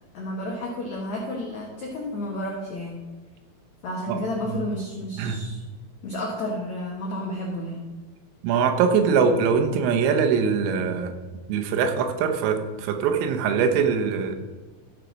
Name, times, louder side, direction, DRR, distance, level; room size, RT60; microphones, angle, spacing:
voice 1, 0.1-3.0 3.8-5.6 6.0-7.8, left 1 dB, 75° left, -2 dB, 1.6 m, -31 dB
voice 2, 8.4-11.1 11.5-14.4, right 6 dB, 85° right, 5 dB, 3.6 m, -22 dB
14.5 x 5.2 x 6.1 m, 1.3 s
omnidirectional pair, 5.6 m